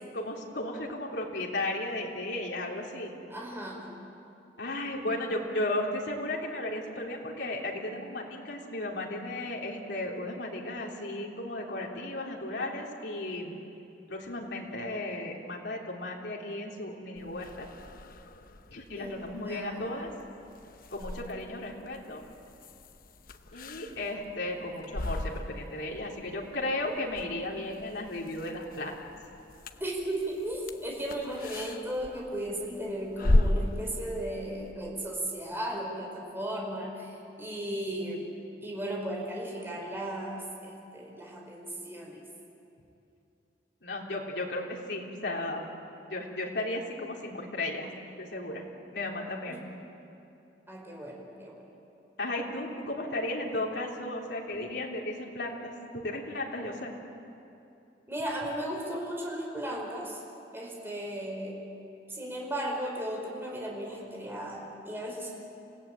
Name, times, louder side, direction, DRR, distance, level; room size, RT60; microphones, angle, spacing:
voice 1, 0.1-3.1 4.6-13.5 14.1-17.7 18.7-20.1 20.9-22.2 23.5-28.9 43.8-45.6 46.1-47.9 48.2-48.6 48.9-49.6 52.2-56.9, left 1 dB, 85° left, -2 dB, 3.4 m, -35 dB
voice 2, 3.3-4.0 18.9-20.0 29.8-38.3 38.6-42.2 49.5-49.6 50.7-51.6 58.1-60.2 60.5-61.6 62.1-65.3, right 1 dB, 15° right, -1 dB, 4.8 m, -36 dB
sound 1, 17.2-34.7, left 1 dB, 55° left, 0.9 m, -36 dB
28.0 x 17.0 x 9.0 m, 2.8 s
head